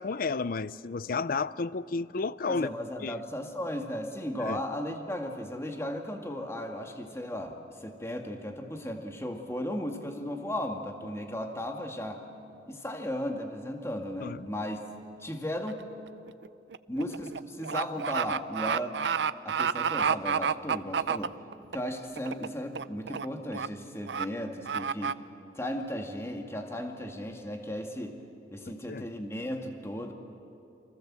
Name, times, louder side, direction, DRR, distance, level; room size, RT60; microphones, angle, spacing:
voice 1, 0.0-2.7 3.0-3.2 4.4-4.6 14.2-14.5 28.8-29.1, left 4 dB, 55° left, 0.6 m, -32 dB
voice 2, 2.4-12.2 12.7-14.8 15.2-15.9 16.9-19.0 19.4-21.4 21.7-25.2 25.5-28.2 28.5-30.1, left 1 dB, 15° left, 2.1 m, -36 dB
sound 1, 15.7-15.9 16.3-21.8 22.2-22.5 22.8-23.3 23.5-23.7 24.1-24.3 24.7-25.1, right 6 dB, 75° right, 0.6 m, -29 dB
29.0 x 26.0 x 7.6 m
head